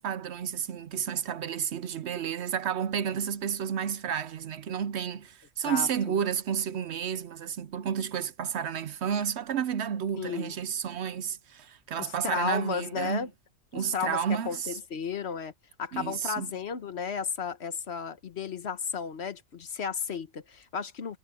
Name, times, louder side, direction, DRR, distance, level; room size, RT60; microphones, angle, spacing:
voice 1, 0.0-13.3 13.7-14.8 15.9-16.5, right 8 dB, 65° right, 0.9 m, -31 dB
voice 2, 5.6-6.2 10.2-10.6 12.0-13.3 13.7-14.2 14.5-15.5 15.8-21.2, left 6 dB, 60° left, 1.2 m, -33 dB
omnidirectional pair, 1.3 m